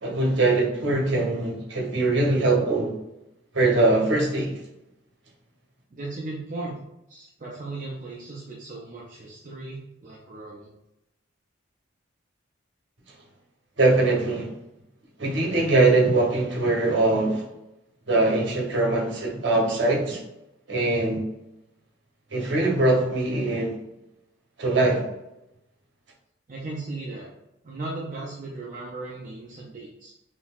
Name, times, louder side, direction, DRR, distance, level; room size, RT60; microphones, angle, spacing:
voice 1, 0.0-2.9 3.5-4.6 13.8-14.5 15.2-17.4 18.1-20.2 20.7-21.2 22.3-23.8 24.6-25.0, right 2 dB, 65° right, -1 dB, 0.8 m, -22 dB
voice 2, 5.9-6.8 7.1-10.7 26.5-27.3 27.6-30.1, right 2 dB, 40° right, -4 dB, 0.4 m, -36 dB
3.8 x 2.6 x 2.4 m, 0.89 s
head